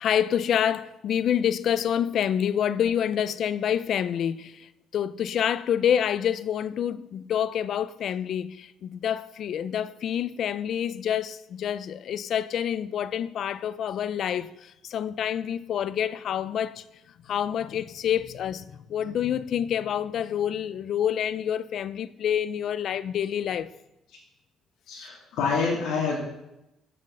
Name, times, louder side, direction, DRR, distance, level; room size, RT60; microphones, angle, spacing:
voice 1, 0.0-16.8 17.3-18.6 18.9-23.7, left 9 dB, 50° left, 0.4 m, -27 dB
voice 2, 24.9-26.2, left 5 dB, 90° left, 2.4 m, -27 dB
7.6 x 7.4 x 6.6 m
cardioid pair, 175°, 0 cm